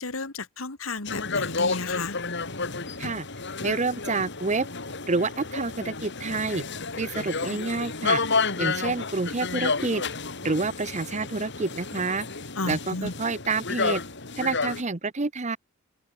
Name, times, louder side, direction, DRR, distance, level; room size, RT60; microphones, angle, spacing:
voice 1, 0.0-2.2 12.6-13.1, left 3 dB, 85° left, 2.5 m, -32 dB
sound 1, 1.0-14.8, left 4 dB, 60° left, 4.1 m, -31 dB
voice 2, 3.6-4.7 5.1-6.6 7.0-8.2 8.6-10.0 10.4-12.3 12.7-14.0 14.4-15.6, right 3 dB, 35° right, 1.0 m, -28 dB
open air
head